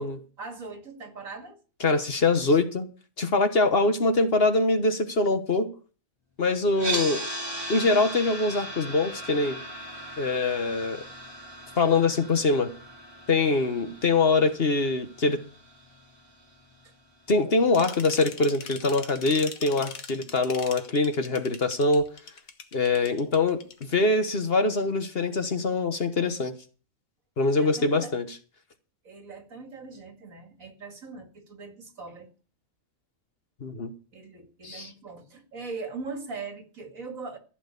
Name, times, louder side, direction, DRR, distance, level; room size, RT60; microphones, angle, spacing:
voice 1, 0.0-1.6 27.5-28.1 29.0-32.3 34.1-37.4, right 4 dB, 75° right, 2.8 m, -40 dB
voice 2, 1.8-2.9 3.2-5.7 6.4-7.2 7.7-9.6 10.2-11.0 11.8-12.7 13.3-15.4 17.3-22.1 22.7-26.5 27.4-28.3 33.6-33.9 34.6-34.9, left 3 dB, 45° left, 1.4 m, -24 dB
sound 1, 6.7-16.8, right 1 dB, 15° right, 4.1 m, -38 dB
sound 2, 17.7-23.8, left 6 dB, 80° left, 1.8 m, -41 dB
15.0 x 6.1 x 8.4 m
omnidirectional pair, 1.4 m